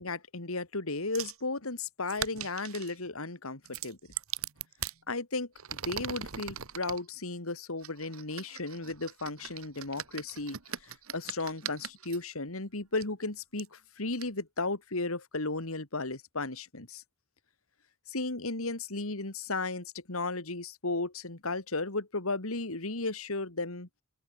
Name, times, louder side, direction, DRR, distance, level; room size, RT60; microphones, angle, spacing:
voice 1, 0.0-4.0 5.1-17.0 18.1-23.9, left 3 dB, 75° left, 2.7 m, -35 dB
sound 1, 1.1-1.4 2.1-3.0 3.7-5.0 5.6-7.0 7.8-12.2 13.0-13.1 13.6-13.7 14.2-14.3, right 9 dB, 75° right, 1.9 m, -40 dB
open air
head